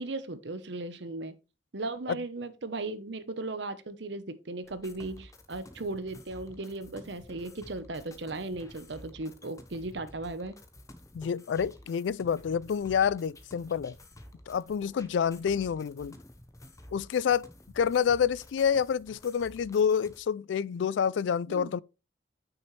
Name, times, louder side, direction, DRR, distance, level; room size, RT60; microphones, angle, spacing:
voice 1, 0.0-1.3 1.7-10.6 21.5-21.8, right 2 dB, 65° right, 0.9 m, -37 dB
sound 1, 4.6-20.2, left 1 dB, 15° left, 0.9 m, -52 dB
voice 2, 11.1-14.0 14.5-16.2 16.9-17.5 17.8-21.8, left 7 dB, 70° left, 0.3 m, -28 dB
8.9 x 6.3 x 3.2 m
head